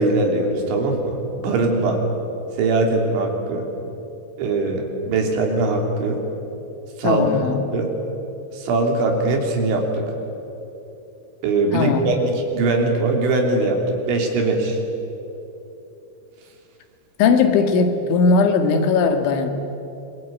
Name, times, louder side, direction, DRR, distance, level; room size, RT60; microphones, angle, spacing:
voice 1, 0.0-2.0 2.6-3.7 4.4-6.2 7.0-7.4 7.7-7.9 8.5-10.1 11.4-14.8, right 2 dB, 85° right, 2 dB, 5.6 m, -21 dB
voice 2, 7.0-7.6 11.7-12.0 17.2-19.5, left 4 dB, 85° left, 6 dB, 4.3 m, -18 dB
26.0 x 23.0 x 9.4 m, 2.9 s
omnidirectional pair, 5.3 m